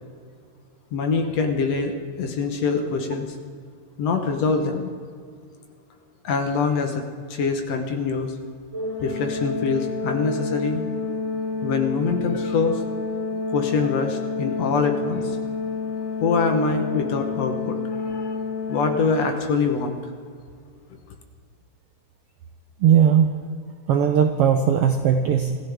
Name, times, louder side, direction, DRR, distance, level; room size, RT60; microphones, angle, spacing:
voice 1, 0.9-3.4 4.0-4.9 6.2-7.0 7.3-8.3 9.0-10.8 11.6-12.8 13.5-15.4 16.2-18.4 18.7-20.0, left 4 dB, 65° left, 4 dB, 2.1 m, -24 dB
Organ, 8.7-19.6, left 3 dB, 25° right, 5.3 m, -29 dB
voice 2, 22.8-23.3 23.9-25.6, right 8 dB, 75° right, 6 dB, 1.3 m, -18 dB
27.0 x 15.0 x 3.5 m, 2.1 s
omnidirectional pair, 3.5 m